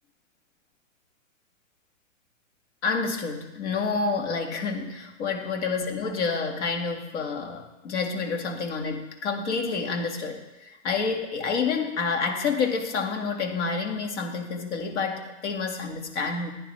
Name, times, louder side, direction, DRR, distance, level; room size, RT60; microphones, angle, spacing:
voice 1, 2.8-16.5, left 4 dB, 60° left, 3 dB, 2.2 m, -28 dB
14.5 x 10.5 x 3.4 m, 1.0 s
hypercardioid pair, 120°, 39 cm